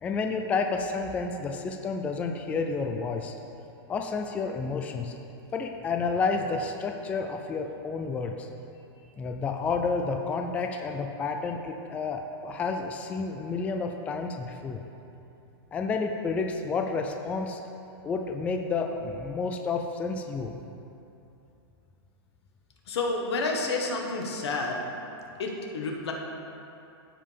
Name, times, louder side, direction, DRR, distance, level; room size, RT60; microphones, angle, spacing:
voice 1, 0.0-3.3 3.9-5.1 5.5-8.5 9.2-14.8 15.7-17.6 18.0-20.5, left 4 dB, 10° left, 4 dB, 0.3 m, -30 dB
voice 2, 22.9-24.8 25.4-26.1, left 3 dB, 85° left, 1 dB, 1.4 m, -29 dB
14.5 x 5.4 x 3.4 m, 2.8 s
supercardioid pair, 155°, 13 cm